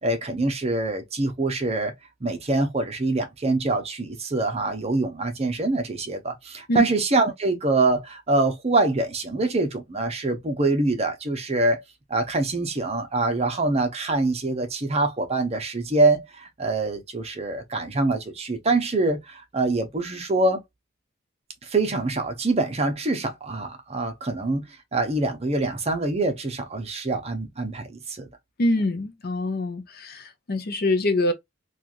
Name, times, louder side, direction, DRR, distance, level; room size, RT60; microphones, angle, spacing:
voice 1, 0.0-1.9 2.2-11.8 12.1-20.6 21.6-24.6 24.9-28.3, right 2 dB, 30° right, 0.7 m, -25 dB
voice 2, 28.6-31.3, left 2 dB, 50° left, 0.6 m, -24 dB
3.0 x 2.4 x 2.4 m
head